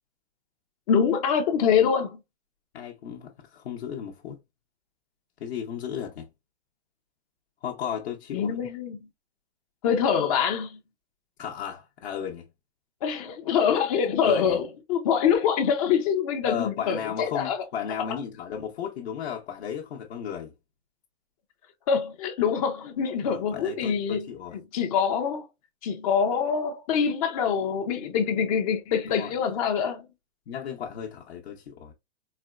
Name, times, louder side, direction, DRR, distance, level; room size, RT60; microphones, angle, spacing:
voice 1, 0.9-2.2 8.3-9.0 9.8-10.8 13.0-17.6 18.1-18.2 21.9-24.3 24.7-25.4 25.8-30.1, left 7 dB, 30° left, 0.5 m, -25 dB
voice 2, 2.7-4.4 5.4-6.3 7.6-8.6 11.4-12.5 14.2-14.6 16.4-20.5 23.3-24.6 29.1-29.3 30.5-31.9, left 8 dB, 60° left, 0.9 m, -34 dB
4.2 x 2.1 x 2.3 m
hypercardioid pair, 145°, 35 cm